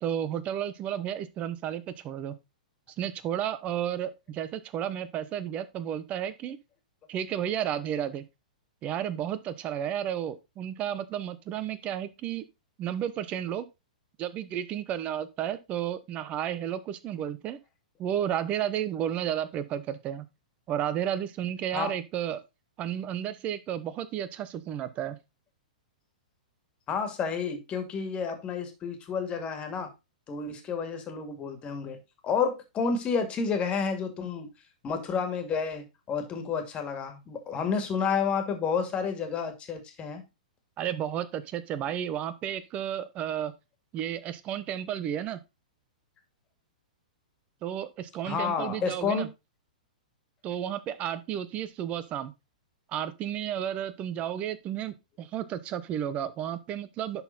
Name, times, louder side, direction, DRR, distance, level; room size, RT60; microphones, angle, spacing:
voice 1, 0.0-2.3 3.0-6.6 7.1-8.2 8.8-12.5 12.8-13.7 14.2-17.6 18.0-20.2 20.7-22.4 22.8-25.2 40.8-43.5 43.9-45.4 47.6-49.3 50.4-52.3 52.9-57.2, right 10 dB, 30° right, 1.0 m, -32 dB
voice 2, 26.9-29.9 30.3-32.0 32.2-34.5 34.8-40.2 48.2-49.3, left 6 dB, 25° left, 2.2 m, -30 dB
11.0 x 4.3 x 4.1 m
hypercardioid pair, 120°, 4 cm